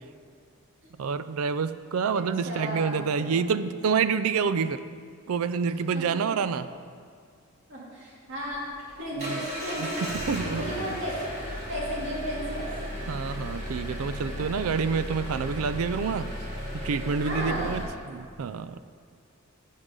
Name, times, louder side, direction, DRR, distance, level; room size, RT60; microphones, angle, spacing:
voice 1, 1.0-4.8 5.3-6.7 9.3-9.5 9.8-11.0 13.1-16.3 16.7-18.8, right 6 dB, 75° right, 13 dB, 0.4 m, -28 dB
voice 2, 2.1-3.4 5.9-6.3 7.7-8.6 9.0-11.2 11.7-12.7 14.3-14.7 17.2-17.8, equal, 55° right, -5 dB, 2.8 m, -34 dB
Engine, 8.3-17.8, equal, 30° right, 2.3 m, -35 dB
15.5 x 6.4 x 3.8 m, 2.1 s
head